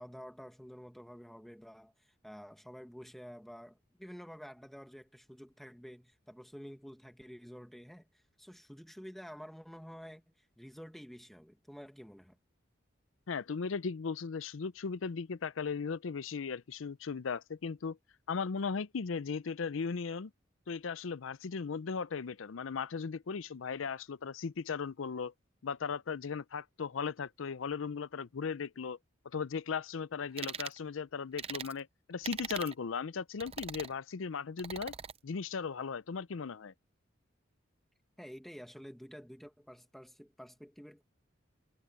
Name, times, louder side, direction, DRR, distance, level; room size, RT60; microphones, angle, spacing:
voice 1, 0.0-12.4 38.2-41.0, equal, ahead, 1.8 m, -50 dB
voice 2, 13.3-18.0 18.3-20.3 20.7-25.3 25.6-29.0 29.3-34.9 35.2-36.7, left 5 dB, 90° left, 0.5 m, -37 dB
sound 1, 30.4-30.8 31.4-31.7 32.2-32.7 33.4-33.9 34.6-35.2, right 7 dB, 30° right, 0.6 m, -41 dB
head